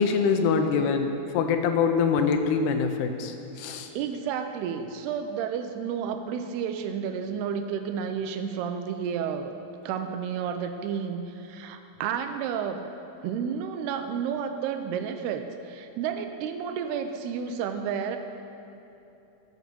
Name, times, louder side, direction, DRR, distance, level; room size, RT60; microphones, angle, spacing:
voice 1, 0.0-3.9, left 5 dB, 85° left, 6 dB, 2.8 m, -24 dB
voice 2, 4.0-9.5 9.8-12.9 13.2-18.2, right 7 dB, 85° right, 7 dB, 2.7 m, -31 dB
14.5 x 6.1 x 6.9 m, 2.9 s
omnidirectional pair, 4.6 m